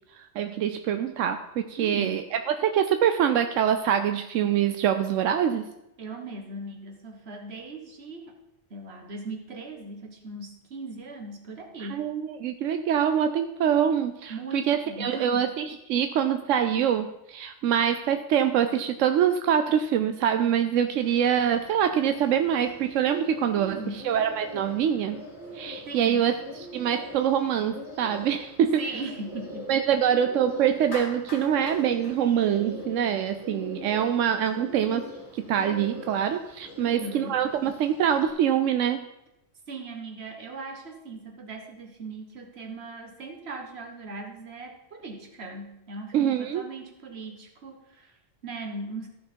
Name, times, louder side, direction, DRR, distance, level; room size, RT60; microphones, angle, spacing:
voice 1, 0.1-5.7 11.8-25.2 25.5-28.8 29.7-39.1 46.1-46.6, right 9 dB, 90° right, 8 dB, 1.0 m, -25 dB
voice 2, 1.8-2.3 6.0-8.4 8.7-12.1 14.3-15.5 23.6-24.0 25.8-26.2 28.8-29.7 36.8-37.4 39.7-49.1, right 2 dB, 55° right, 3 dB, 1.7 m, -39 dB
Bird, 21.0-38.3, left 2 dB, 10° right, 2.1 m, -43 dB
Clapping, 30.9-33.2, left 3 dB, 60° left, 1.7 m, -42 dB
13.5 x 6.2 x 4.5 m, 0.87 s
omnidirectional pair, 1.3 m